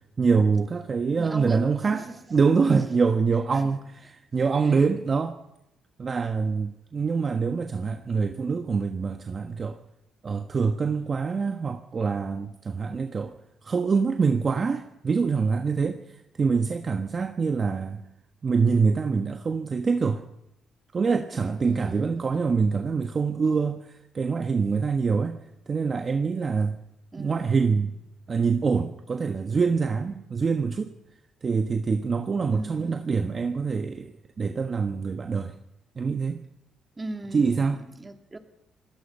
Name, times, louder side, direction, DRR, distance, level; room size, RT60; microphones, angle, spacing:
voice 1, 0.2-2.0 2.3-5.4 6.0-9.8 10.2-13.3 13.6-16.0 16.4-18.0 18.4-20.2 20.9-25.4 25.7-26.8 27.2-27.9 28.3-30.9 31.4-34.1 34.4-35.5 36.0-36.4 37.3-37.8, right 5 dB, 40° right, 6 dB, 1.3 m, -25 dB
voice 2, 1.2-2.2 3.5-3.7 4.6-4.9 21.3-22.4 27.1-27.8 32.5-33.4 37.0-38.4, right 2 dB, 20° right, 5 dB, 2.8 m, -39 dB
26.0 x 18.5 x 5.6 m, 0.87 s
cardioid pair, 90°, 0 cm